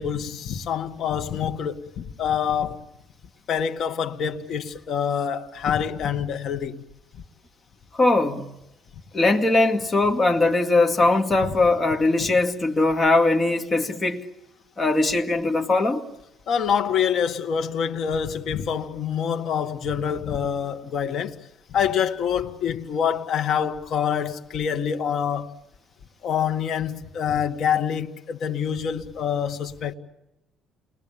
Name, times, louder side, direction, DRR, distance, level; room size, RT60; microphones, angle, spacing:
voice 1, 0.0-2.8 3.5-6.8 11.4-11.5 16.5-21.4 21.7-25.6 26.2-29.9, left 8 dB, 55° left, 1.8 m, -26 dB
voice 2, 7.9-8.4 9.1-14.2 14.8-16.0, left 2 dB, 25° left, 2.3 m, -20 dB
29.5 x 21.5 x 8.8 m
cardioid pair, 135°, 0 cm